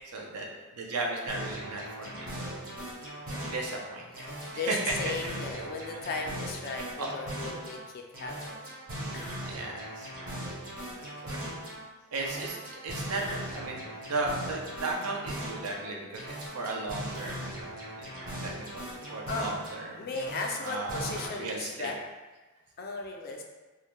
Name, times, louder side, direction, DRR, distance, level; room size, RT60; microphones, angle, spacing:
voice 1, 0.1-0.5 0.8-2.6 3.5-4.1 4.5-4.9 7.0-7.1 9.4-10.1 10.9-11.4 12.1-17.6 18.0-18.1 18.4-18.8 19.1-20.1 20.6-21.9, right 3 dB, 90° right, -1 dB, 0.5 m, -35 dB
sound 1, 1.3-3.8 4.1-7.8 8.1-11.8 12.1-15.8 16.1-19.8 20.1-21.3, right 1 dB, 40° right, 0.6 m, -39 dB
voice 2, 3.1-3.5 4.6-8.6 9.1-9.3 19.3-19.5 20.0-22.0 22.8-23.4, left 4 dB, 45° left, 2 dB, 0.3 m, -36 dB
2.3 x 2.1 x 3.0 m, 1.2 s
head